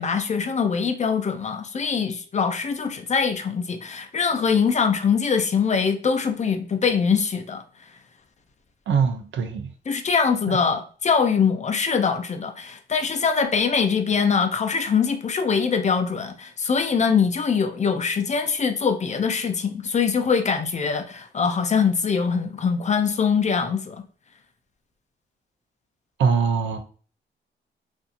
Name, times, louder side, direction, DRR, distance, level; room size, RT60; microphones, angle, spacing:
voice 1, 0.0-7.6 9.9-24.0, left 6 dB, 35° left, 0.5 m, -23 dB
voice 2, 8.9-9.7 10.5-10.6 26.2-26.8, right 6 dB, 70° right, 0.6 m, -22 dB
2.6 x 2.5 x 2.5 m
cardioid pair, 70°, 20 cm